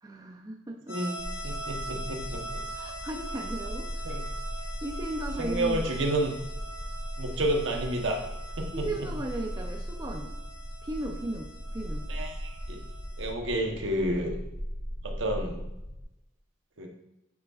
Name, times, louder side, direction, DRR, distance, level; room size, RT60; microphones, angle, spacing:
voice 1, 0.0-1.0 2.7-4.2 4.6-5.9 8.7-10.3 10.8-12.1, right 1 dB, 20° right, 2 dB, 0.5 m, -36 dB
sound 1, 0.9-13.3, right 2 dB, 55° left, 2.4 m, -43 dB
voice 2, 0.9-2.6 4.0-4.2 5.4-6.3 7.2-8.2 8.6-8.9 12.1-12.8 13.2-14.4 15.0-15.6 16.8-16.9, right 1 dB, 65° right, 3 dB, 1.0 m, -30 dB
sound 2, 1.2-16.0, equal, 85° left, 1.5 m, -38 dB
9.2 x 5.1 x 2.4 m, 0.89 s
head